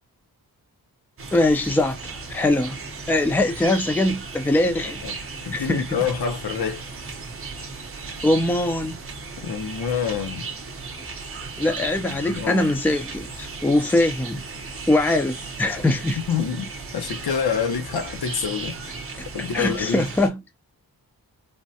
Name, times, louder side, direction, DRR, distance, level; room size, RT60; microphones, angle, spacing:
sound 1, 1.2-20.3, right 4 dB, 35° right, 0.7 m, -36 dB
voice 1, 1.3-2.8 3.1-5.0 5.5-5.9 8.2-9.0 11.6-14.4 14.9-16.2 19.5-20.4, left 2 dB, 5° left, 0.4 m, -22 dB
voice 2, 5.5-6.8 9.4-10.5 12.1-12.6 16.3-19.0 19.3-20.0, left 6 dB, 75° left, 0.7 m, -27 dB
3.4 x 2.1 x 2.7 m
wide cardioid pair, 155°, 38 cm